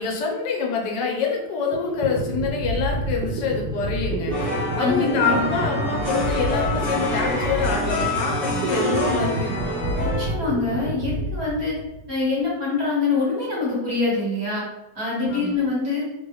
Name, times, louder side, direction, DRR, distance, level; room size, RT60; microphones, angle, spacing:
voice 1, 0.0-4.5 4.8-9.6 15.3-15.5, left 5 dB, 85° left, 0 dB, 1.3 m, -26 dB
sound 1, 1.4-1.5 1.7-12.2, right 2 dB, 75° right, 1.2 m, -28 dB
sound 2, 4.3-10.3, left 1 dB, 10° right, 0.6 m, -27 dB
voice 2, 4.8-5.5 10.0-11.7 12.1-14.6 14.9-16.0, left 3 dB, 40° right, -6 dB, 1.4 m, -24 dB
3.2 x 2.2 x 3.3 m, 0.96 s
omnidirectional pair, 1.9 m